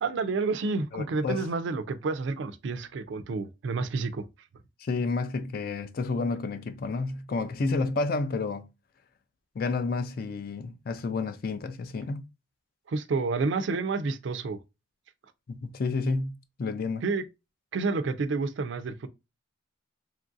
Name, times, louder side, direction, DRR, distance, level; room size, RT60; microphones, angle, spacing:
voice 1, 0.0-4.2 12.9-14.6 17.0-17.2 17.7-19.1, right 4 dB, 65° right, 0.4 m, -29 dB
voice 2, 0.9-1.5 4.8-8.7 9.6-12.3 15.5-17.0, left 3 dB, 50° left, 0.3 m, -30 dB
2.9 x 2.6 x 2.4 m
head